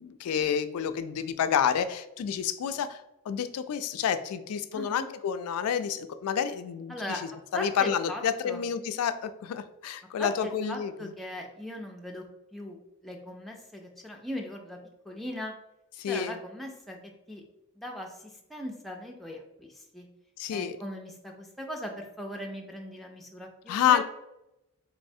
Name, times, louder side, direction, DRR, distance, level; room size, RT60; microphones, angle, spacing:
voice 1, 0.0-7.2 7.5-11.1 16.0-16.4 20.4-20.8 23.7-24.0, left 8 dB, 85° left, 11 dB, 0.3 m, -29 dB
voice 2, 4.7-5.1 6.9-7.2 7.5-8.6 10.2-12.2 12.5-14.8 15.0-15.5 16.1-17.0 17.3-17.4 17.8-20.1 20.5-24.0, left 1 dB, ahead, 0 dB, 0.4 m, -39 dB
4.2 x 3.1 x 2.6 m, 0.89 s
head